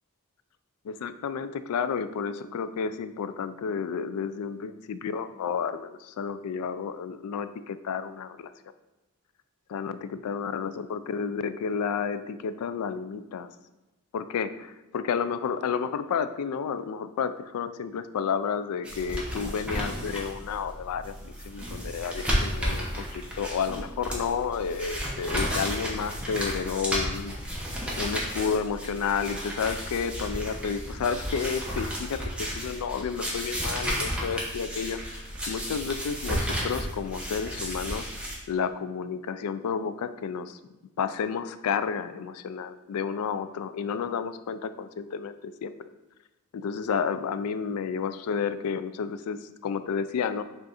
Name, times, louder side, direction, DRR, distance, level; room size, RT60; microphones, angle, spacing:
voice 1, 0.8-8.5 9.7-10.0 10.2-13.5 14.1-27.3 28.0-40.6 41.0-45.7 46.5-50.4, left 6 dB, 90° left, 12 dB, 0.3 m, -31 dB
sound 1, 18.8-38.3, equal, 5° right, 0.9 m, -33 dB
5.1 x 2.5 x 4.1 m, 1.0 s
head